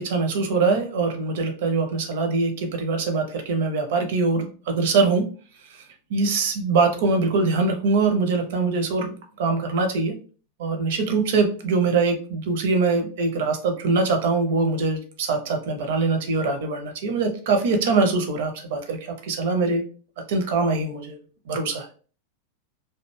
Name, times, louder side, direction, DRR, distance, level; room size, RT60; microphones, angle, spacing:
voice 1, 0.0-5.2 6.1-10.1 10.6-19.8 20.3-21.2 21.5-21.9, right 4 dB, 55° right, 5 dB, 0.6 m, -23 dB
2.4 x 2.2 x 3.1 m, 0.40 s
figure-of-eight pair, 90°, 0 cm